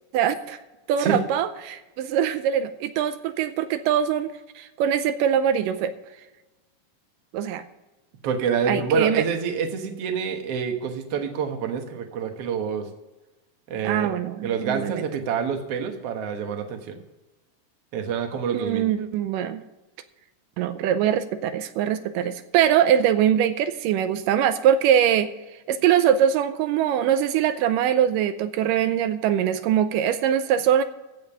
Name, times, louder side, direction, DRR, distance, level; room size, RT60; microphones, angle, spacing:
voice 1, 0.1-0.6 0.9-5.9 7.3-7.6 8.7-9.2 13.8-15.0 18.5-19.6 20.6-25.3 25.7-30.8, right 9 dB, 90° right, 11 dB, 2.3 m, -22 dB
voice 2, 8.2-12.9 13.7-14.1 14.4-17.0 17.9-18.9, right 6 dB, 55° right, 5 dB, 2.0 m, -27 dB
15.5 x 5.2 x 7.0 m, 1.1 s
omnidirectional pair, 3.8 m